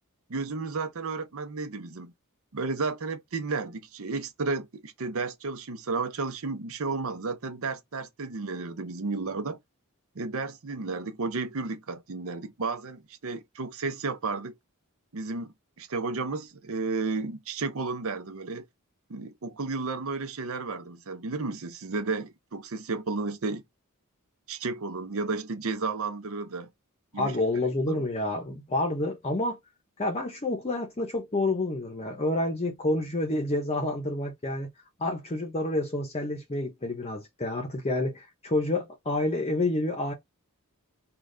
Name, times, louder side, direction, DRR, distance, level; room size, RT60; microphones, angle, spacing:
voice 1, 0.3-2.1 2.5-9.6 10.2-14.5 15.1-18.6 19.1-23.6 24.5-26.7 27.1-27.4 27.9-28.0, right 4 dB, 65° right, 0.7 m, -32 dB
voice 2, 27.1-29.6 30.0-34.7 35.0-40.1, left 2 dB, 30° left, 0.7 m, -29 dB
3.9 x 2.4 x 3.2 m
head